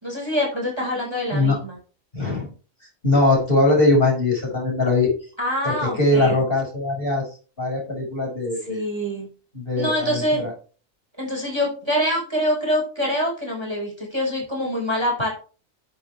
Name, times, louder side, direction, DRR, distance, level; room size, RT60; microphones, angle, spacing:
voice 1, 0.0-1.8 5.4-6.4 8.7-9.3 9.8-10.5 11.2-15.3, equal, 20° right, -1 dB, 4.9 m, -25 dB
voice 2, 1.3-1.6 2.1-2.5 3.0-5.1 5.6-7.2 7.6-8.8 9.5-10.5, left 2 dB, 40° left, -1 dB, 6.0 m, -21 dB
11.0 x 8.4 x 3.4 m, 0.36 s
omnidirectional pair, 1.4 m